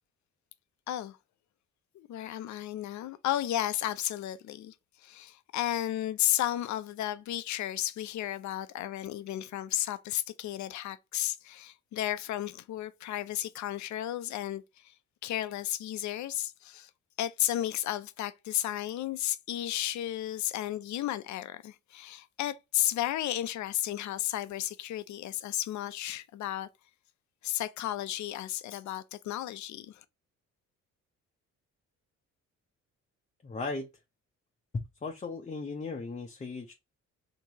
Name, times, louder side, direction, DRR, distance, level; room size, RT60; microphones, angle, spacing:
voice 1, 0.9-1.2 1.9-14.9 15.2-16.9 17.2-26.7 27.4-30.0, left 13 dB, 70° left, 0.6 m, -33 dB
voice 2, 33.4-33.9 35.0-36.7, left 3 dB, 25° left, 0.6 m, -37 dB
4.6 x 2.9 x 2.7 m
cardioid pair, 90°, 30 cm